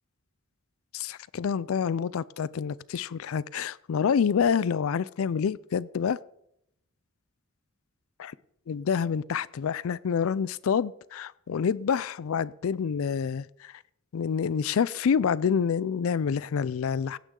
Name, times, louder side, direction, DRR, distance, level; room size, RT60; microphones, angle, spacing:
voice 1, 0.9-6.2 8.2-8.3 8.7-13.7 14.1-17.2, left 7 dB, 90° left, 0.4 m, -27 dB
17.0 x 9.1 x 3.8 m
head